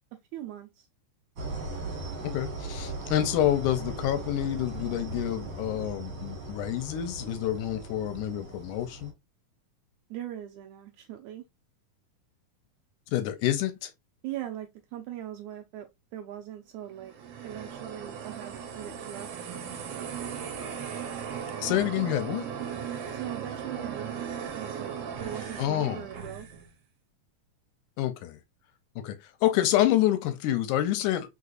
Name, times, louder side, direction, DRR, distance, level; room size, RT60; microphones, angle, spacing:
voice 1, 0.3-0.9 10.1-11.4 14.2-15.9 16.1-17.1 17.4-19.3 23.1-24.2 24.5-26.5, right 12 dB, 85° right, 1.7 m, -40 dB
sound 1, 1.4-9.1, right 2 dB, 45° right, 1.5 m, -38 dB
voice 2, 2.2-9.1 13.1-13.9 21.6-22.5 25.6-26.1 28.0-28.4 29.0-31.3, left 12 dB, 80° left, 1.9 m, -28 dB
sound 2, 16.9-26.7, right 7 dB, 65° right, 1.6 m, -37 dB
4.9 x 3.9 x 2.4 m
omnidirectional pair, 3.8 m